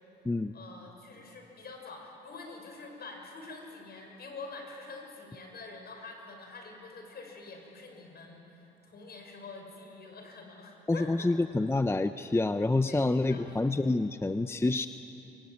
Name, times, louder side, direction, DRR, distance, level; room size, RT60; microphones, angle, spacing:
voice 1, 0.5-11.3 12.9-13.7, left 3 dB, 55° left, 2 dB, 6.7 m, -46 dB
voice 2, 10.9-14.9, left 2 dB, 10° left, 10 dB, 0.7 m, -27 dB
24.5 x 23.0 x 9.4 m, 2.9 s
cardioid pair, 90°, 20 cm